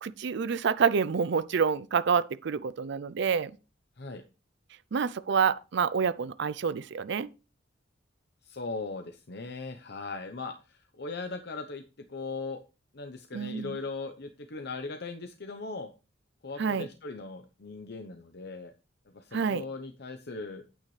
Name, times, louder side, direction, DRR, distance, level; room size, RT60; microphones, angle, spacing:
voice 1, 0.0-3.5 4.9-7.3 13.3-13.8 16.6-16.9 19.3-19.6, right 6 dB, 65° right, 0.5 m, -28 dB
voice 2, 8.4-11.8 12.1-12.6 12.9-15.9 16.4-18.7 19.1-20.6, left 3 dB, 60° left, 0.9 m, -39 dB
9.0 x 9.0 x 3.3 m
head